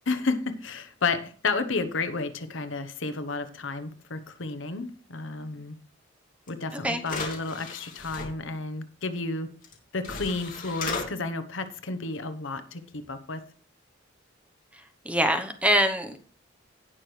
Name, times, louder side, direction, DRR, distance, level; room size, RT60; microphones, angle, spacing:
voice 1, 0.1-5.7 6.5-9.5 9.9-13.4, left 3 dB, 65° left, 12 dB, 1.0 m, -31 dB
sound 1, 6.5-6.6 7.0-8.3 9.6-9.7 10.0-11.1, left 4 dB, 45° left, 3.0 m, -35 dB
voice 2, 15.0-16.2, equal, 5° right, 6 dB, 1.0 m, -24 dB
17.5 x 6.2 x 3.3 m, 0.40 s
head